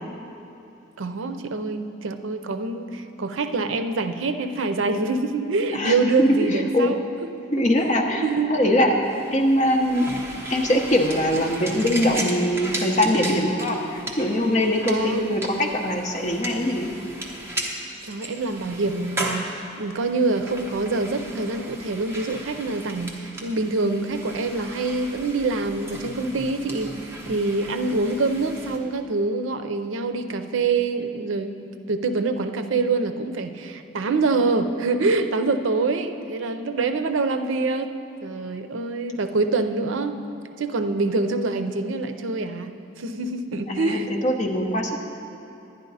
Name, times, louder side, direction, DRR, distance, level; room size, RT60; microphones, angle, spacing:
voice 1, 1.0-7.0 8.2-8.5 14.8-15.5 18.0-37.9 38.2-40.2 40.6-42.7 43.0-44.1, right 3 dB, 75° right, 8 dB, 0.5 m, -25 dB
voice 2, 5.7-6.9 7.5-8.9 9.3-10.1 10.5-16.9 43.7-45.0, left 1 dB, 35° left, 1 dB, 0.9 m, -22 dB
sound 1, 9.0-28.8, right 1 dB, 15° right, 0.9 m, -36 dB
10.5 x 10.5 x 4.0 m, 2.9 s
head